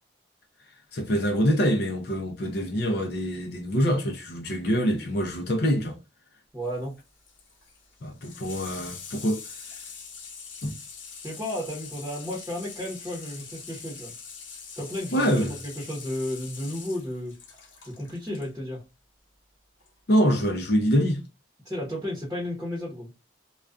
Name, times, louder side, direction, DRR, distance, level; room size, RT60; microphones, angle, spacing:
voice 1, 0.9-6.0 8.0-9.4 10.6-10.7 15.1-15.5 20.1-21.2, equal, 55° left, 0.5 m, -25 dB
voice 2, 6.5-7.0 11.2-14.1 14.8-17.4 17.8-18.8 21.6-23.1, left 1 dB, 15° right, 0.8 m, -33 dB
Water tap faucet / Sink (filling or washing), 6.6-18.5 19.8-19.9, left 6 dB, 80° left, 0.8 m, -43 dB
2.3 x 2.2 x 2.4 m
head